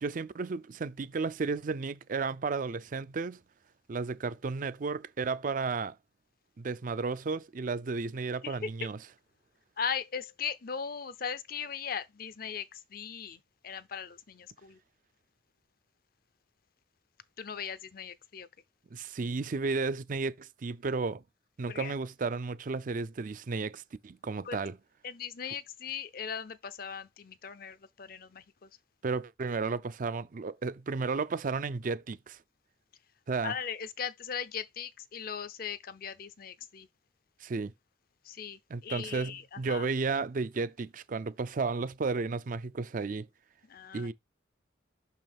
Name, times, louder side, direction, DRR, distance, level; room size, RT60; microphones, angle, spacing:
voice 1, 0.0-3.4 3.9-6.0 6.6-9.0 18.9-21.2 21.6-24.7 29.0-32.4 33.3-33.5 37.4-37.7 38.7-43.3 43.9-44.1, right 4 dB, 45° right, 0.4 m, -33 dB
voice 2, 8.4-8.9 9.8-14.8 17.4-18.5 21.7-21.9 24.4-24.6 25.0-28.7 33.4-36.9 38.2-39.9 43.7-44.1, left 7 dB, 50° left, 0.6 m, -39 dB
6.2 x 5.4 x 3.5 m
head